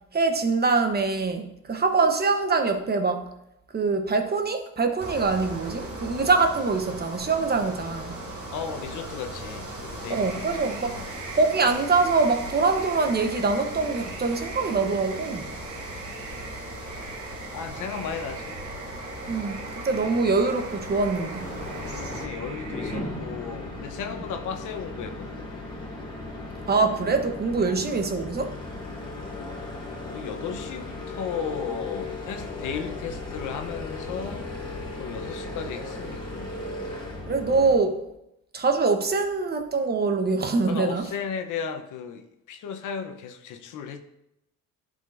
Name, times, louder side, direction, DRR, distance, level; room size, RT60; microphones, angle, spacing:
voice 1, 0.1-3.3 3.7-8.2 10.1-11.0 11.4-15.5 19.3-21.5 26.7-28.5 37.3-38.0 38.5-41.1, right 4 dB, 35° right, 0.9 m, -24 dB
sound 1, 5.0-22.3, right 1 dB, 50° right, 2.6 m, -38 dB
voice 2, 8.5-10.4 10.8-11.1 17.5-18.6 19.3-19.4 21.9-25.6 27.6-27.8 30.0-34.5 35.0-36.6 40.6-44.0, left 6 dB, 80° left, 0.9 m, -35 dB
sound 2, 10.1-23.0, right 4 dB, 70° right, 1.2 m, -43 dB
sound 3, 21.4-37.7, left 2 dB, 15° left, 2.1 m, -36 dB
11.0 x 5.1 x 2.6 m
cardioid pair, 90°, 30 cm